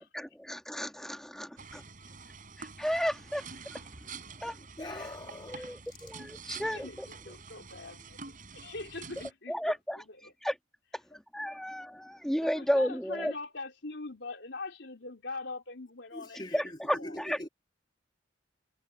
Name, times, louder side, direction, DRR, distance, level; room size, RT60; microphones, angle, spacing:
voice 1, 0.1-1.8 2.6-3.9 4.4-4.6 5.5-6.9 9.5-10.0 10.4-10.5 11.1-13.3 16.5-17.4, equal, 5° left, 1.9 m, -33 dB
sound 1, 1.6-9.3, right 5 dB, 50° right, 5.1 m, -47 dB
voice 2, 4.6-5.7 11.5-11.6 16.1-17.5, left 1 dB, 25° left, 2.3 m, -43 dB
voice 3, 6.4-10.3 12.4-17.2, left 3 dB, 75° left, 3.5 m, -43 dB
head